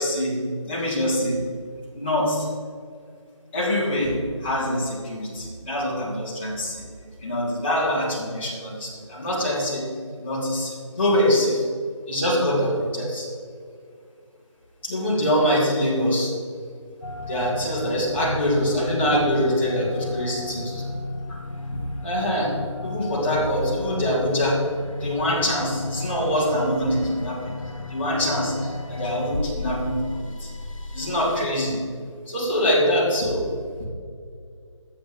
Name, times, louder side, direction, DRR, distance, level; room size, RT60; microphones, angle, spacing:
voice 1, 0.0-1.4 1.9-2.5 3.5-6.8 7.2-11.6 12.1-13.3 14.8-16.3 17.3-20.8 21.3-21.4 22.0-22.6 22.8-24.6 25.0-27.6 27.9-30.5 30.9-31.8 32.3-33.5 33.8-33.9, equal, 20° left, -7 dB, 2.2 m, -24 dB
sound 1, 17.0-31.5, left 2 dB, 80° left, 1.5 m, -34 dB
10.5 x 8.7 x 3.5 m, 2.2 s
figure-of-eight pair, 170°, 17 cm